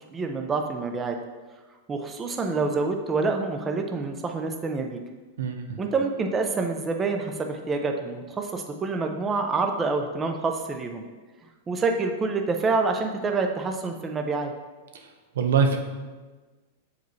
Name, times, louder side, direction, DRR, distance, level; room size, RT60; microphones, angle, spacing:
voice 1, 0.1-1.2 1.9-5.0 5.8-11.0 11.7-14.5, right 4 dB, 15° right, 4 dB, 0.5 m, -27 dB
voice 2, 5.4-5.8 14.9-15.8, right 5 dB, 90° right, 5 dB, 0.8 m, -24 dB
6.7 x 4.8 x 3.1 m, 1.3 s
supercardioid pair, 150°, 0 cm